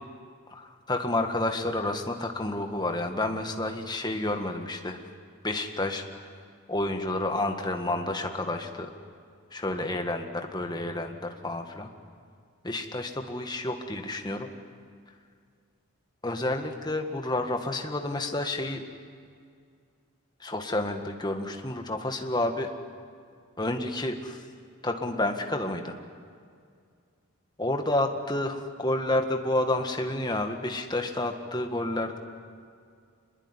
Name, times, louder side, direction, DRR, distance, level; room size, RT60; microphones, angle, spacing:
voice 1, 0.5-5.0 5.4-6.0 6.7-8.9 9.5-11.9 12.6-14.5 16.2-18.8 20.4-22.7 23.6-24.5 24.8-26.0 27.6-32.2, left 2 dB, 20° left, 5 dB, 1.7 m, -30 dB
25.5 x 21.0 x 9.8 m, 2.2 s
head